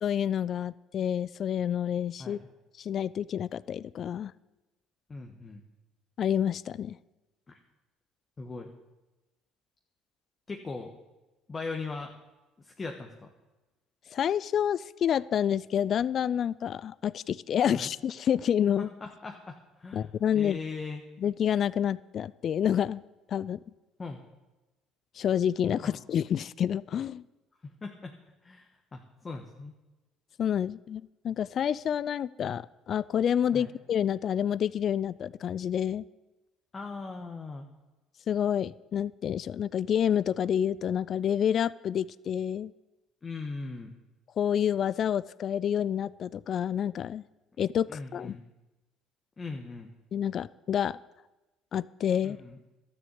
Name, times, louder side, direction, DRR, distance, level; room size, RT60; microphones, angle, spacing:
voice 1, 0.0-2.4 2.8-4.3 6.2-7.0 14.1-18.9 19.9-20.6 21.2-23.0 23.3-23.6 25.2-27.2 30.4-36.0 38.3-42.7 44.4-47.2 47.6-48.4 50.1-51.0 51.7-52.4, left 9 dB, 50° left, 20 dB, 0.3 m, -28 dB
voice 2, 5.1-5.6 7.5-7.6 8.4-8.7 10.5-10.9 11.5-12.1 12.6-13.3 17.7-17.9 18.8-20.1 20.3-21.0 24.0-24.2 25.8-25.9 27.6-28.1 28.4-29.7 33.5-33.7 36.7-37.7 43.2-43.9 47.9-48.4 49.4-49.9 52.2-52.6, left 3 dB, 30° left, 3 dB, 1.3 m, -39 dB
12.5 x 6.9 x 8.1 m, 1.1 s
hypercardioid pair, 65°, 0 cm